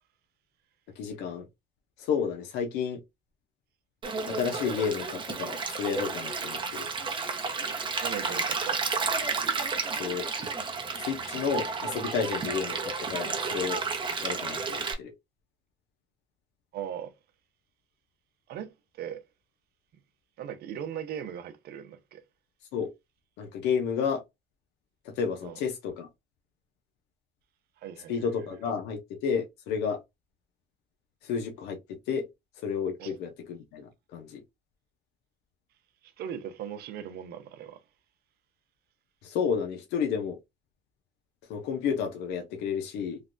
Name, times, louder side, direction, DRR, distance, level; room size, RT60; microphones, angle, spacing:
voice 1, 1.0-1.4 2.0-3.0 4.2-6.9 10.0-10.3 11.0-13.8 14.2-15.1 22.7-22.9 23.4-24.2 25.0-26.1 28.1-30.0 31.2-32.3 32.6-34.4 39.2-40.4 41.5-43.2, left 6 dB, 90° left, 0.6 m, -31 dB
Stream, 4.0-14.9, right 4 dB, 30° right, 0.7 m, -32 dB
voice 2, 8.0-8.9 16.7-17.1 18.5-19.2 20.4-22.2 25.4-25.6 27.8-28.3 33.0-33.2 36.0-37.8, right 9 dB, 70° right, 0.6 m, -39 dB
3.2 x 2.2 x 2.5 m
cardioid pair, 110°, 17 cm